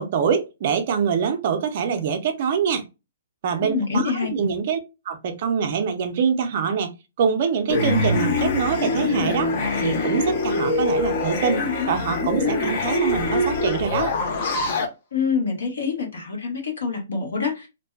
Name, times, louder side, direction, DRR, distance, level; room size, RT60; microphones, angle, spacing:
voice 1, 0.0-2.9 3.4-4.8 5.1-6.9 7.2-9.5 9.8-14.1, right 6 dB, 35° right, 0.5 m, -24 dB
voice 2, 3.6-4.3 15.1-17.7, left 5 dB, 90° left, 1.1 m, -26 dB
sound 1, 7.7-14.9, left 2 dB, 30° left, 0.5 m, -23 dB
2.6 x 2.2 x 2.2 m
hypercardioid pair, 175°, 0 cm